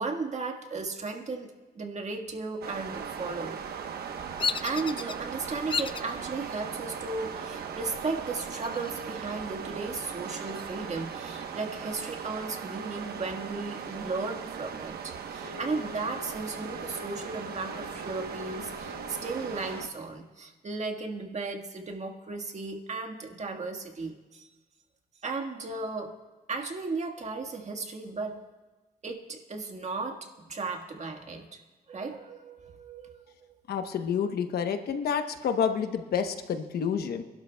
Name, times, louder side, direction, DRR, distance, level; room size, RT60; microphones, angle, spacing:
voice 1, 0.0-3.6 4.6-24.5 25.2-26.2 26.5-28.5 29.0-31.6 31.9-33.5, right 3 dB, 45° right, 4 dB, 1.6 m, -35 dB
sound 1, 2.6-19.9, right 7 dB, 80° right, 1.1 m, -39 dB
Bird vocalization bird call bird song, 4.4-5.2 5.7-6.1 6.7-7.2 8.4-9.2 9.5-9.6 10.1-11.5, left 5 dB, 30° left, 0.4 m, -34 dB
Wind instrument woodwind instrument, 15.4-19.6, left 4 dB, 55° left, 4.8 m, -46 dB
voice 2, 33.7-37.2, left 7 dB, 85° left, 7 dB, 1.0 m, -29 dB
25.5 x 12.0 x 2.3 m, 1.2 s
cardioid pair, 85°, 16 cm